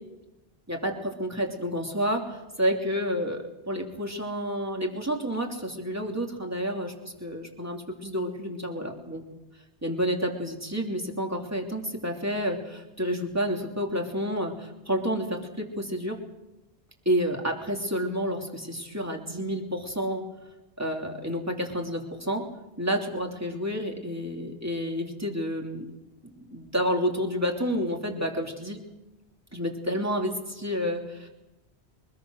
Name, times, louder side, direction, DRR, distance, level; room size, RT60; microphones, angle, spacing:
voice 1, 0.7-9.2 9.8-16.2 17.0-20.2 20.8-22.5 22.8-25.9 26.4-28.8 29.5-31.3, equal, 15° right, 1 dB, 3.0 m, -30 dB
24.0 x 20.5 x 6.4 m, 1.0 s
omnidirectional pair, 1.1 m